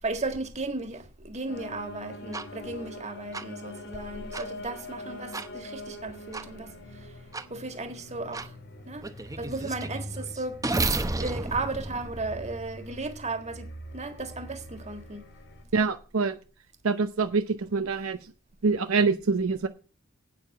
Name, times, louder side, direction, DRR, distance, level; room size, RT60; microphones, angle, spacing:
voice 1, 0.0-7.2 7.5-8.6 8.9-9.1 9.4-10.8 11.1-15.2, right 3 dB, 35° right, 1.8 m, -35 dB
sound 1, 1.5-15.6, left 1 dB, 55° left, 1.6 m, -43 dB
sound 2, 2.3-2.5 3.3-3.4 4.3-4.5 5.3-5.5 6.3-6.5 7.3-7.5 8.3-8.5 9.0-12.9, right 2 dB, 15° right, 0.8 m, -32 dB
voice 2, 15.7-16.4 16.8-18.2 18.6-19.7, right 4 dB, 75° right, 0.7 m, -25 dB
8.8 x 6.9 x 7.7 m
head